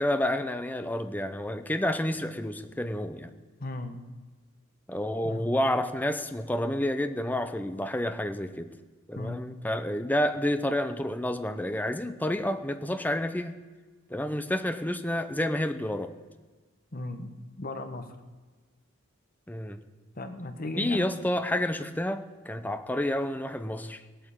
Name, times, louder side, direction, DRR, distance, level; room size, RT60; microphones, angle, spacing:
voice 1, 0.0-3.3 4.9-8.7 9.1-13.6 14.1-16.1 19.5-19.8 20.8-24.0, left 1 dB, 10° left, 9 dB, 0.7 m, -29 dB
voice 2, 3.6-4.0 5.2-5.5 9.1-9.4 16.9-17.3 17.6-18.1 20.2-21.1, left 2 dB, 45° left, 7 dB, 1.4 m, -36 dB
17.0 x 9.1 x 8.7 m, 1.3 s
head